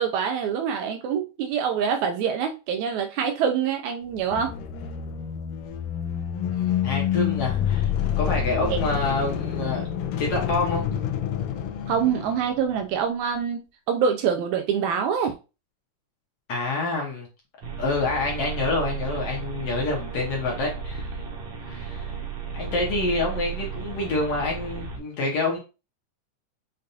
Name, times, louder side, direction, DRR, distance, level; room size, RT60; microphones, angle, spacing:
voice 1, 0.0-4.5 8.7-8.8 11.9-15.4, right 7 dB, 80° right, 1.8 m, -25 dB
sound 1, 4.1-12.8, left 9 dB, 80° left, 1.5 m, -28 dB
voice 2, 6.4-9.9 10.2-10.8 16.5-17.3 17.8-21.2 21.6-22.1 22.5-25.6, left 3 dB, 65° left, 1.7 m, -27 dB
sound 2, 17.6-25.0, right 6 dB, 65° right, 1.7 m, -34 dB
6.5 x 2.5 x 2.7 m
omnidirectional pair, 3.6 m